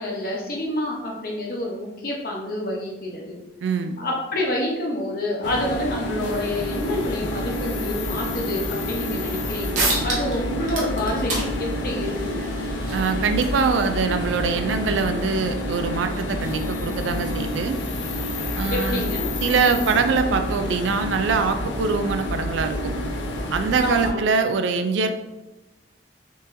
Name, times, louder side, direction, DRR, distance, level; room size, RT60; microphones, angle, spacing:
voice 1, 0.0-3.4 4.0-12.5 18.7-19.3 23.8-24.3, left 1 dB, 50° left, -2 dB, 0.8 m, -28 dB
voice 2, 3.6-4.0 12.9-17.8 18.6-19.0 19.4-22.9 23.5-25.1, right 5 dB, 90° right, 8 dB, 0.4 m, -23 dB
sound 1, 5.4-24.1, left 1 dB, 85° left, 0.5 m, -28 dB
sound 2, 9.7-10.4 10.6-15.8, right 2 dB, 40° right, 0.8 m, -31 dB
3.8 x 2.7 x 2.6 m, 0.99 s
head